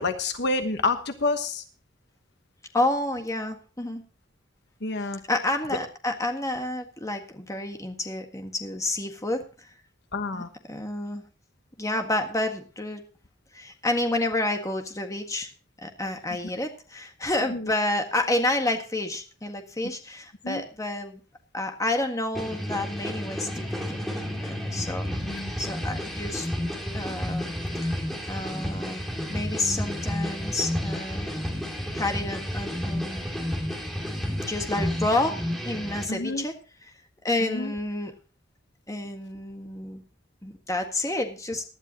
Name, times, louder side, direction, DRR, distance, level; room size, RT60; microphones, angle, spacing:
voice 1, 0.0-1.6 4.8-5.2 10.1-10.5 17.5-17.6 20.4-20.6 25.3-25.5 36.1-36.4 37.4-37.7, left 3 dB, 55° left, 8 dB, 1.1 m, -28 dB
voice 2, 2.7-4.0 5.0-9.7 10.3-11.2 11.8-13.0 13.5-15.5 15.8-21.2 21.5-24.0 24.4-25.1 25.6-26.5 26.9-27.5 27.8-28.0 28.3-31.3 31.9-33.2 34.3-35.4 35.6-36.5 36.8-36.9 37.2-38.1 38.9-40.0 40.4-41.6, left 2 dB, 15° left, 5 dB, 1.7 m, -29 dB
sound 1, 22.3-36.0, equal, ahead, 2.7 m, -31 dB
19.0 x 11.5 x 2.9 m, 0.37 s
head